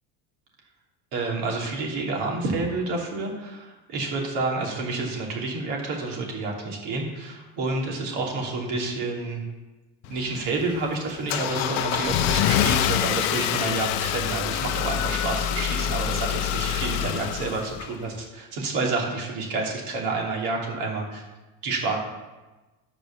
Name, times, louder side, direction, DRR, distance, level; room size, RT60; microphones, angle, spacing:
voice 1, 1.1-9.4 10.0-21.2 21.6-22.0, right 3 dB, 55° right, -1 dB, 3.1 m, -29 dB
Car / Engine starting, 10.0-18.2, left 11 dB, 60° left, 0.7 m, -26 dB
11.5 x 5.1 x 7.3 m, 1.2 s
supercardioid pair, 145°, 49 cm